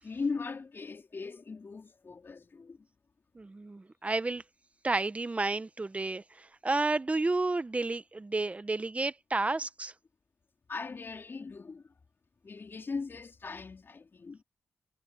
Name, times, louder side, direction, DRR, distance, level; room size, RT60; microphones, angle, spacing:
voice 1, 0.0-2.8 10.7-12.0 12.4-14.4, left 4 dB, 45° left, 4.2 m, -39 dB
voice 2, 3.3-4.4 4.8-9.9, right 3 dB, 25° right, 1.0 m, -31 dB
cardioid pair, 75°, 5 cm